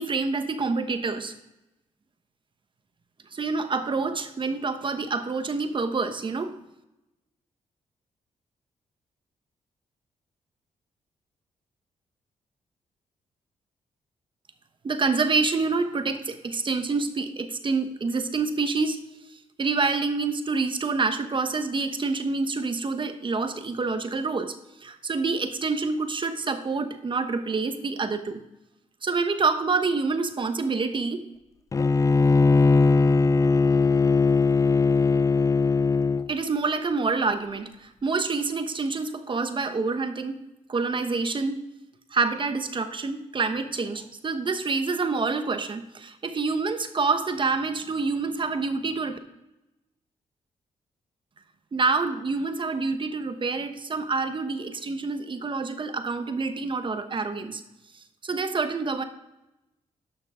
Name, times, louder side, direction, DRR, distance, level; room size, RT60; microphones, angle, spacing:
voice 1, 0.0-1.3 3.3-6.6 14.8-19.0 19.6-24.6 24.8-28.4 29.0-31.2 36.3-40.4 40.7-41.6 42.1-49.2 51.7-57.6 58.2-59.0, right 4 dB, 40° right, 8 dB, 1.0 m, -27 dB
Bowed string instrument, 31.7-36.3, left 4 dB, 25° left, 0.4 m, -20 dB
11.5 x 5.9 x 3.7 m, 0.93 s
cardioid pair, 70°, 13 cm